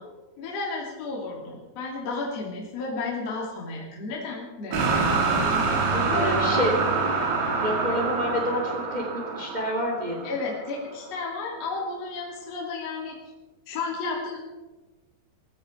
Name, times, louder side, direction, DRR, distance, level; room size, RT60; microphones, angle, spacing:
voice 1, 0.4-4.8 5.9-6.7 10.2-13.2 13.7-14.4, left 3 dB, 40° left, -3 dB, 3.2 m, -32 dB
sound 1, 4.7-10.8, right 4 dB, 85° right, 5.6 m, -26 dB
voice 2, 6.1-6.7 7.6-10.3, equal, 15° right, -1 dB, 1.4 m, -28 dB
18.0 x 15.0 x 4.6 m, 1.2 s
omnidirectional pair, 5.7 m